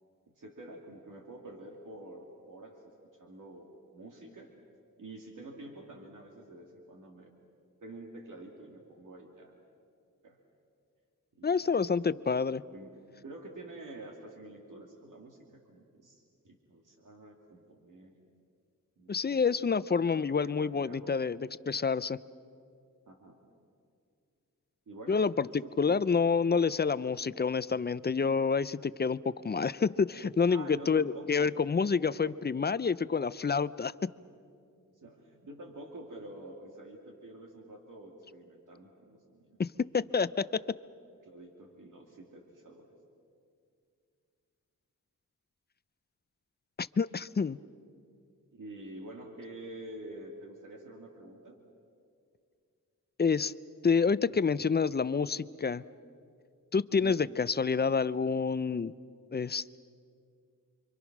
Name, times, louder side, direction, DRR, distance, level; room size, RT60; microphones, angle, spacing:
voice 1, 0.3-2.8 3.2-4.5 5.0-7.3 7.8-9.5 10.2-10.4 11.4-18.1 19.0-19.5 19.9-21.1 23.1-23.4 24.9-26.0 30.5-31.6 32.0-32.4 34.9-39.6 41.2-42.9 48.5-51.6 56.9-57.2, right 1 dB, 70° right, 1 dB, 2.5 m, -48 dB
voice 2, 11.4-12.6 19.1-22.2 25.1-34.1 39.6-40.6 46.8-47.6 53.2-53.5 53.8-55.8 56.7-58.9 59.3-59.8, left 5 dB, 30° left, 17 dB, 0.5 m, -28 dB
29.5 x 24.5 x 6.0 m, 2.3 s
wide cardioid pair, 90°, 32 cm